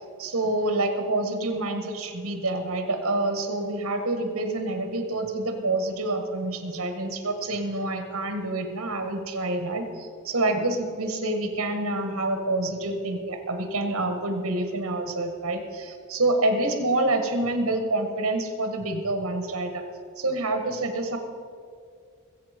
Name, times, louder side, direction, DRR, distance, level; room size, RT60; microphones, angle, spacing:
voice 1, 0.2-19.8 20.2-21.2, right 2 dB, 65° right, 6 dB, 1.7 m, -27 dB
21.0 x 8.2 x 5.3 m, 2.3 s
head